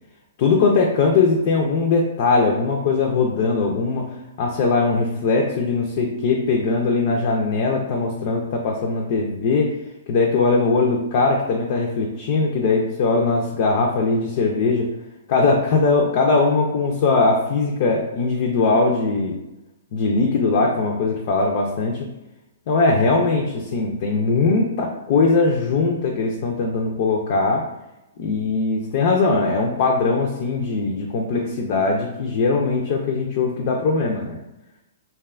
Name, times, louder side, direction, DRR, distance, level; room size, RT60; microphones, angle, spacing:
voice 1, 0.4-4.1 4.4-9.8 10.1-14.9 15.3-19.3 19.9-22.1 22.7-27.6 28.2-34.4, left 3 dB, 50° left, 0 dB, 0.4 m, -20 dB
2.7 x 2.2 x 2.3 m, 0.94 s
hypercardioid pair, 130°, 0 cm